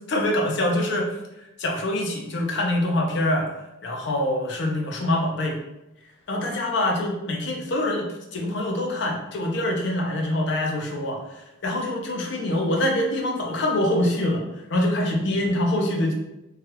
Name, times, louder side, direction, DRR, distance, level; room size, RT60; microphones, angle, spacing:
voice 1, 0.1-1.1 1.6-3.5 3.8-5.6 6.3-14.4 14.7-16.1, left 1 dB, 60° left, 0 dB, 0.6 m, -25 dB
3.1 x 2.3 x 3.0 m, 0.93 s
head